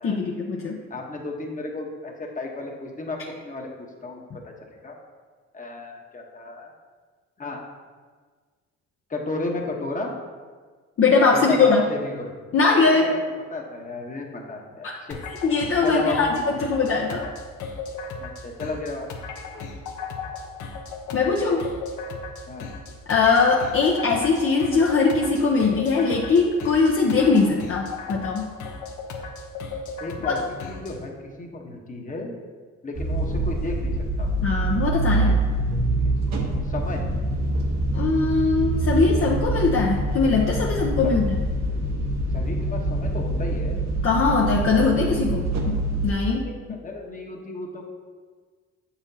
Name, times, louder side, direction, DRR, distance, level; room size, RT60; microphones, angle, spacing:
voice 1, 0.0-0.8 11.0-11.8 12.5-13.1 14.8-14.9 15.4-17.3 21.1-21.7 23.1-28.5 30.2-30.4 34.4-35.4 37.9-41.4 44.0-46.5, left 4 dB, 45° left, -2 dB, 0.7 m, -21 dB
voice 2, 0.9-3.2 3.4-5.0 5.5-6.7 7.4-7.6 9.1-10.1 11.3-12.3 12.8-13.2 13.5-15.2 15.8-16.7 18.2-19.1 19.5-19.7 22.5-22.7 30.0-30.4 30.7-32.4 32.8-33.9 34.2-34.3 35.7-36.1 36.6-37.0 41.0-41.2 42.3-43.8 46.4-47.8, left 2 dB, 25° left, 1 dB, 1.0 m, -33 dB
sound 1, 15.1-31.0, left 4 dB, 80° left, 0.9 m, -36 dB
sound 2, 32.9-46.1, right 2 dB, 60° right, 1.1 m, -25 dB
7.0 x 5.7 x 2.8 m, 1.5 s
cardioid pair, 90°, 30 cm